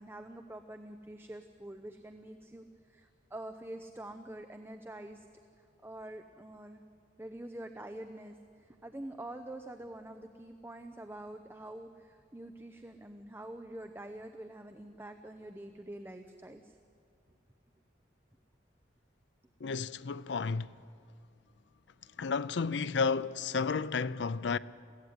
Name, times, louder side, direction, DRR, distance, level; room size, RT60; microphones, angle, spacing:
voice 1, 0.0-5.3 5.6-6.8 7.2-16.8, right 1 dB, 10° right, 0.7 m, -46 dB
voice 2, 19.6-20.7 22.2-24.6, left 5 dB, 70° left, 0.5 m, -32 dB
22.5 x 16.0 x 9.6 m
head